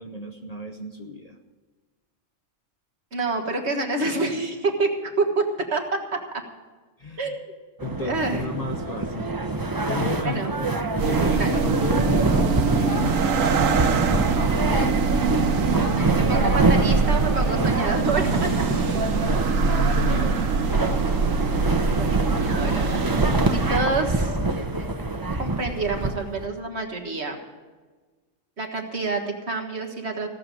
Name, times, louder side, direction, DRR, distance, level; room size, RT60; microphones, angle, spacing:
voice 1, 0.0-1.4 7.0-7.4 7.8-9.3 9.8-13.5 19.6-20.6, left 3 dB, 35° left, 4 dB, 0.9 m, -33 dB
voice 2, 3.1-5.4 5.7-5.8 6.1-6.4 7.2-7.5 8.0-8.4 10.2-10.5 11.4-11.5 14.7-14.9 16.2-18.8 21.9-24.4 25.4-27.4 28.6-30.3, right 3 dB, 55° right, 2 dB, 1.9 m, -27 dB
sound 1, 7.8-26.5, right 2 dB, 20° right, 0.8 m, -26 dB
sound 2, 11.0-23.8, right 5 dB, 90° right, 1.3 m, -23 dB
16.5 x 6.8 x 9.1 m, 1.3 s
omnidirectional pair, 1.3 m